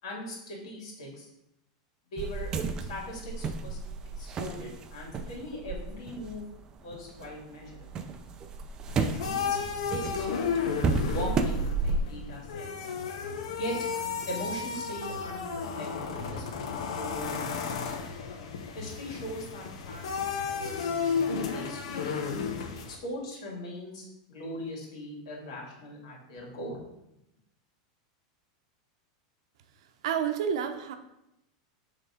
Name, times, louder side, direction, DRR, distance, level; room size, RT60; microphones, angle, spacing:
voice 1, 0.0-1.3 2.1-2.5 2.9-3.8 4.2-6.5 6.8-7.7 9.0-9.6 9.9-10.5 11.1-12.9 13.6-13.8 14.3-17.9 18.7-20.0 20.3-22.3 22.9-26.8, equal, 75° left, -1 dB, 2.6 m, -40 dB
sound 1, 2.2-7.3 7.6-12.0, right 4 dB, 20° right, 0.4 m, -32 dB
sound 2, 8.9-23.0, left 6 dB, 90° left, 0.9 m, -33 dB
voice 2, 30.0-31.0, right 8 dB, 70° right, 8 dB, 0.7 m, -29 dB
6.8 x 3.6 x 5.0 m, 0.85 s
supercardioid pair, 165°, 3 cm